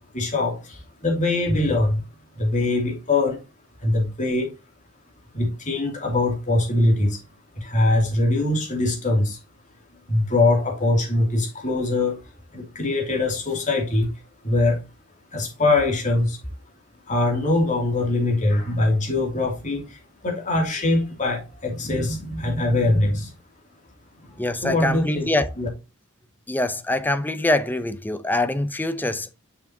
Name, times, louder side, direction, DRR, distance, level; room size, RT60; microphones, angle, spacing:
voice 1, 0.1-2.0 2.3-3.4 3.8-4.5 5.3-7.2 7.5-9.4 10.1-12.2 12.5-14.1 14.4-14.8 15.3-16.4 17.1-23.3 24.6-25.3 25.6-25.7, left 2 dB, 35° left, 2.5 m, -22 dB
voice 2, 24.4-25.5 26.5-29.3, left 2 dB, 10° left, 0.5 m, -24 dB
6.9 x 6.0 x 2.7 m
head